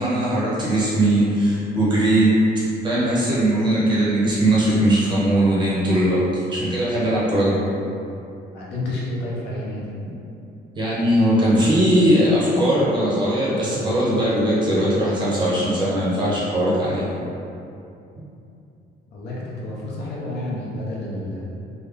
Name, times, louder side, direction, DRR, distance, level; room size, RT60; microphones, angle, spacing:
voice 1, 0.0-2.3 2.8-7.6 10.8-17.0, right 1 dB, 25° right, -8 dB, 0.7 m, -19 dB
voice 2, 7.2-7.5 8.5-9.9 19.1-21.4, left 1 dB, 65° left, -6 dB, 0.8 m, -30 dB
3.5 x 2.1 x 3.5 m, 2.7 s
cardioid pair, 175°, 18 cm